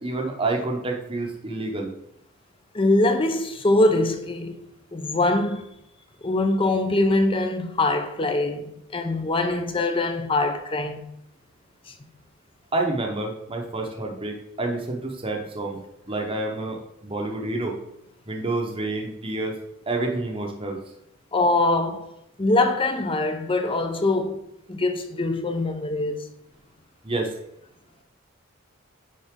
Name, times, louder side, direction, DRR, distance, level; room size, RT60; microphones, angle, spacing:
voice 1, 0.0-1.9 12.7-15.8 16.1-17.7 18.3-19.5 19.9-20.8 27.0-27.3, right 2 dB, 25° right, 0.9 m, -28 dB
voice 2, 2.7-4.6 4.9-5.7 6.2-11.1 11.9-12.0 21.3-22.1 22.4-26.3, left 2 dB, 25° left, 0.6 m, -23 dB
9.5 x 3.9 x 3.7 m
head